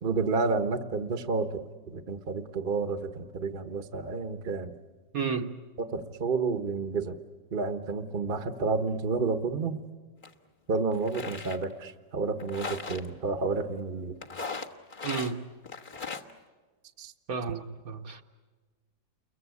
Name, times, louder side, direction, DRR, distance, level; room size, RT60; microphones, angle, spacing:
voice 1, 0.0-4.7 5.8-7.2 7.5-9.8 10.7-14.2 17.0-17.1, right 4 dB, 35° right, 1.2 m, -30 dB
voice 2, 5.1-5.5 15.0-15.4 17.3-18.2, right 5 dB, 55° right, 1.4 m, -32 dB
sound 1, 10.2-10.3 10.9-11.6 12.4-13.1 14.2-15.3 15.6-16.3, left 4 dB, 30° left, 1.4 m, -37 dB
29.5 x 22.5 x 8.3 m
omnidirectional pair, 1.9 m